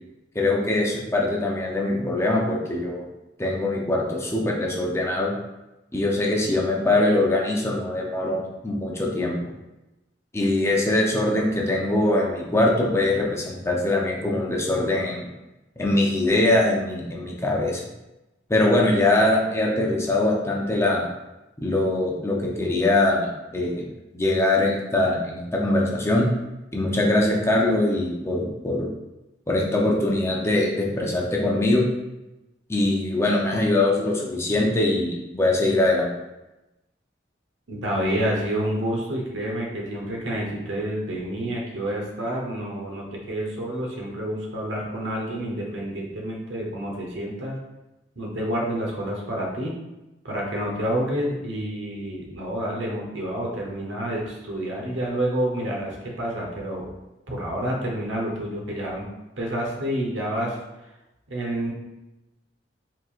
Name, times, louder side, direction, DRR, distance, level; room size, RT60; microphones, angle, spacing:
voice 1, 0.3-3.0 3.4-5.3 5.9-9.4 10.3-15.3 15.8-17.8 18.5-21.1 21.6-23.9 24.1-26.3 26.7-28.9 29.5-31.8 32.7-36.1, left 2 dB, 15° left, -2 dB, 0.7 m, -22 dB
voice 2, 37.7-47.6 48.2-49.7 50.2-56.9 57.3-59.1 59.4-60.6 61.3-61.7, right 1 dB, 85° right, -1 dB, 1.1 m, -28 dB
4.6 x 3.7 x 2.5 m, 0.98 s
head